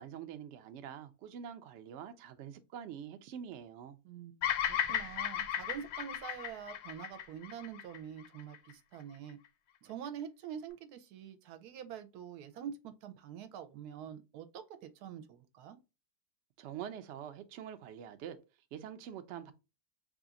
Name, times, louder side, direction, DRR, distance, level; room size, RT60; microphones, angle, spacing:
voice 1, 0.0-4.0 16.6-18.4 18.7-19.5, right 9 dB, 65° right, 0.7 m, -45 dB
voice 2, 4.0-9.4 9.8-15.8, right 8 dB, 85° right, 1.1 m, -46 dB
Bird vocalization bird call bird song, 4.4-8.7, left 9 dB, 80° left, 1.1 m, -35 dB
3.4 x 2.4 x 3.8 m
omnidirectional pair, 1.6 m